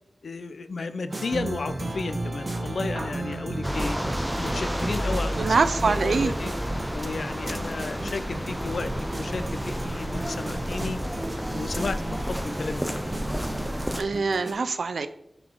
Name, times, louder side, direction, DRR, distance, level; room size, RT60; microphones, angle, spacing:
voice 1, 0.2-4.0 4.4-5.6 6.0-6.5 6.9-11.0 11.5-13.0, left 4 dB, 80° left, 11 dB, 0.5 m, -33 dB
sound 1, 1.1-14.5, right 2 dB, 40° right, 1.1 m, -35 dB
sound 2, 2.4-10.5 11.9-12.0, right 1 dB, 20° right, 1.6 m, -48 dB
sound 3, 3.6-14.0, equal, 5° right, 0.6 m, -30 dB
voice 2, 5.4-6.4 13.9-15.1, right 4 dB, 85° right, 11 dB, 0.5 m, -24 dB
7.4 x 4.0 x 4.5 m, 0.76 s
wide cardioid pair, 100°, 0 cm